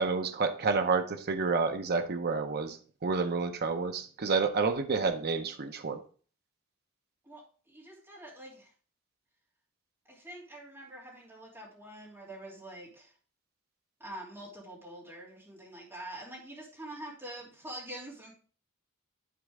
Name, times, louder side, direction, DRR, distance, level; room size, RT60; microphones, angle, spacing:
voice 1, 0.0-2.8 3.0-6.0, right 4 dB, 50° right, 7 dB, 0.7 m, -29 dB
voice 2, 7.2-8.7 10.0-13.1 14.0-18.3, right 1 dB, 10° right, -5 dB, 2.9 m, -45 dB
11.5 x 4.2 x 3.6 m, 0.42 s
head